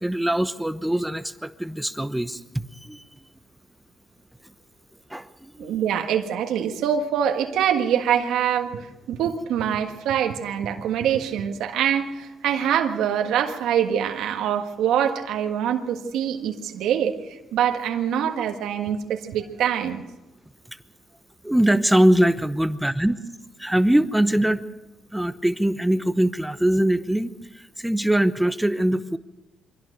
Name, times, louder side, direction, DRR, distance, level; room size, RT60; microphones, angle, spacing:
voice 1, 0.0-3.0 5.1-5.8 21.4-23.2 23.6-24.7 25.1-29.2, right 1 dB, 5° right, 11 dB, 0.9 m, -22 dB
voice 2, 5.6-20.0, right 9 dB, 85° right, 5 dB, 1.6 m, -24 dB
23.5 x 16.5 x 6.7 m, 1.0 s
cardioid pair, 90°, 0 cm